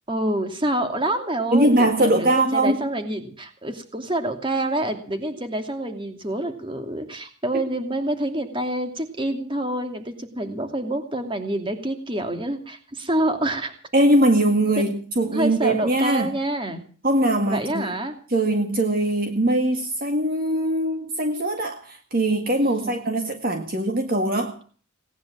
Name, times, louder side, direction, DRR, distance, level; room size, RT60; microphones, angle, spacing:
voice 1, 0.1-13.7 15.3-16.8 17.2-18.2 22.6-23.0, right 1 dB, 25° right, 6 dB, 2.7 m, -27 dB
voice 2, 1.5-2.9 13.9-16.3 17.0-17.9 18.3-24.6, right 1 dB, 45° right, 5 dB, 1.8 m, -21 dB
18.5 x 10.0 x 7.5 m, 0.42 s
head